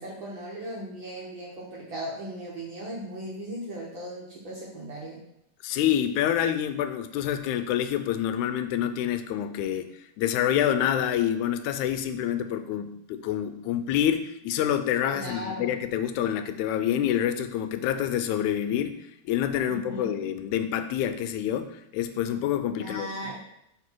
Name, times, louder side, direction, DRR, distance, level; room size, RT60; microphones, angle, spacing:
voice 1, 0.0-5.2 15.1-15.7 19.7-20.2 22.7-23.4, equal, 55° right, -4 dB, 1.5 m, -37 dB
voice 2, 5.6-19.0 19.3-23.1, left 10 dB, 85° left, 9 dB, 2.0 m, -27 dB
6.0 x 4.7 x 4.6 m, 0.78 s
omnidirectional pair, 3.3 m